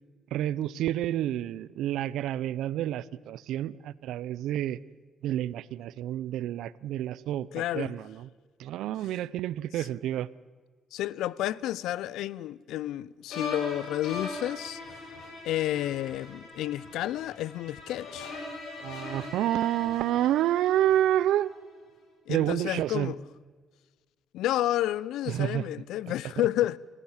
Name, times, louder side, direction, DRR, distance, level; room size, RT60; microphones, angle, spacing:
voice 1, 0.3-4.8 5.2-7.5 7.7-8.3 8.6-10.3 18.8-21.5 22.3-23.1 25.3-25.7, right 12 dB, 85° right, 0.6 m, -29 dB
voice 2, 7.5-7.9 9.8-9.9 10.9-14.8 15.4-18.3 22.3-23.2 24.3-26.8, left 14 dB, 90° left, 0.6 m, -30 dB
sound 1, 13.3-21.5, left 3 dB, 70° left, 7.0 m, -40 dB
28.5 x 15.0 x 7.3 m
cardioid pair, 120°, 0 cm